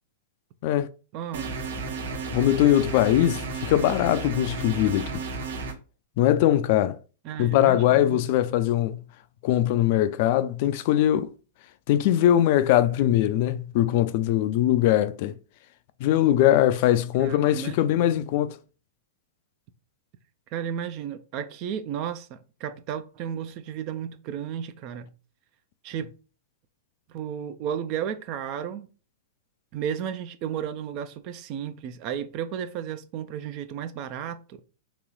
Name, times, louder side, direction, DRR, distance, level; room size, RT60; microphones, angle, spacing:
voice 1, 1.1-1.5 7.2-8.2 17.2-18.1 20.5-25.1 25.8-26.1 27.1-28.9 29.7-34.6, right 9 dB, 45° right, 0.5 m, -33 dB
sound 1, 1.3-5.7, right 4 dB, 65° right, 0.9 m, -33 dB
voice 2, 2.3-5.2 6.2-7.0 7.4-9.0 9.4-11.3 11.9-15.4 16.0-18.6, left 12 dB, 50° left, 0.3 m, -21 dB
3.0 x 3.0 x 3.9 m
figure-of-eight pair, 105°, 0 cm